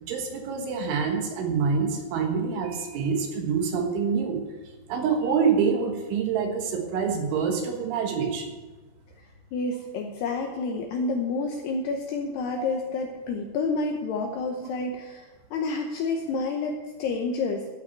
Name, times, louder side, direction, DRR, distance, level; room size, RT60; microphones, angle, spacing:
voice 1, 0.0-4.4 4.9-8.5 12.6-12.7, right 6 dB, 75° right, 3 dB, 3.8 m, -26 dB
voice 2, 9.5-17.7, left 3 dB, 80° left, 2 dB, 2.5 m, -29 dB
13.5 x 5.9 x 9.6 m, 1.3 s
omnidirectional pair, 5.8 m